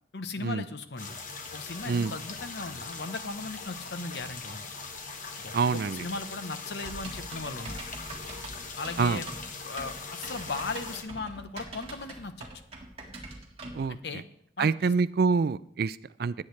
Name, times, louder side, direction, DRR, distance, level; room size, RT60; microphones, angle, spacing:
voice 1, 0.1-1.2 1.5-4.6 5.4-7.9 8.8-9.3 9.6-12.5 13.9-14.2 14.6-14.9, left 3 dB, 60° left, 10 dB, 0.8 m, -37 dB
sound 1, 1.0-11.0, left 4 dB, 45° left, 1.2 m, -41 dB
voice 2, 5.5-6.0 9.0-9.2 13.7-14.0 14.6-16.3, right 5 dB, 55° right, 17 dB, 0.4 m, -26 dB
Typing, 6.8-13.9, right 2 dB, 30° right, 1.9 m, -43 dB
18.0 x 8.6 x 3.2 m, 0.71 s
head